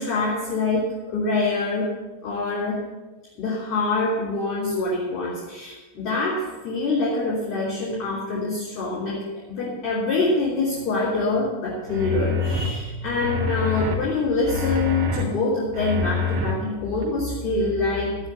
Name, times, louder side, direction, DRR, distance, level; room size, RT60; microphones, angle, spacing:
voice 1, 0.0-1.9 2.2-2.8 3.4-18.1, left 3 dB, 40° left, -5 dB, 3.2 m, -25 dB
sound 1, 11.9-12.7 13.2-13.9 14.4-15.2 15.7-16.5 17.0-17.1, left 3 dB, 40° right, 3.1 m, -26 dB
12.0 x 9.0 x 6.9 m, 1.2 s
figure-of-eight pair, 90°, 0 cm